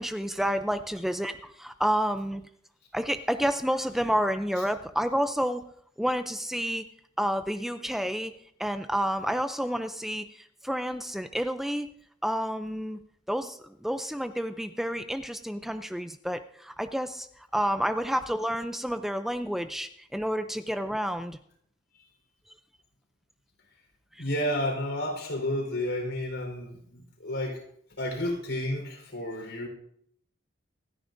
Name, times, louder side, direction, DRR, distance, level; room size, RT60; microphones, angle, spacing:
voice 1, 0.0-2.4 2.9-5.6 6.0-6.8 7.2-8.3 8.6-11.9 12.2-13.0 13.3-17.3 17.5-21.4, equal, ahead, 9 dB, 0.4 m, -29 dB
voice 2, 24.2-27.6 28.0-29.7, left 1 dB, 90° left, 1 dB, 4.3 m, -31 dB
26.5 x 9.8 x 2.6 m, 0.68 s
head